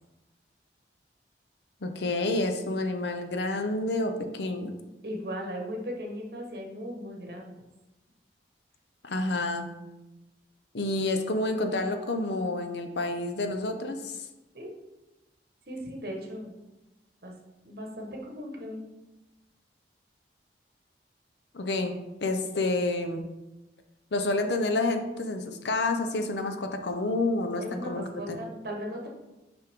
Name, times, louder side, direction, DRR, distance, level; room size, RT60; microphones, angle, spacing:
voice 1, 1.8-4.7 9.0-9.7 10.7-14.3 21.5-23.2 24.1-28.4, left 2 dB, 75° left, 6 dB, 0.7 m, -29 dB
voice 2, 5.0-7.5 14.5-14.7 15.7-16.5 17.2-17.3 17.6-18.9 27.6-29.1, equal, 60° right, 0 dB, 1.3 m, -37 dB
5.7 x 5.3 x 3.6 m, 1.0 s
head